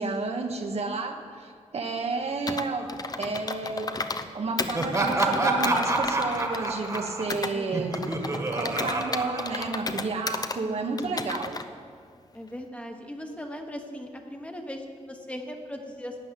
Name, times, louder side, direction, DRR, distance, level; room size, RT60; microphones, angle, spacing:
voice 1, 0.0-4.0 4.3-11.6, right 3 dB, 55° right, 4 dB, 1.2 m, -31 dB
Computer keyboard, 2.5-4.3 4.6-7.5 7.9-10.6 11.0-11.7, left 3 dB, 30° left, 0.7 m, -33 dB
Laughter, 4.7-10.2, right 2 dB, 25° right, 1.6 m, -28 dB
voice 2, 7.5-8.5 10.6-11.2 12.3-16.2, equal, 10° left, 3 dB, 1.2 m, -39 dB
12.5 x 8.2 x 9.8 m, 2.1 s
wide cardioid pair, 135°, 13 cm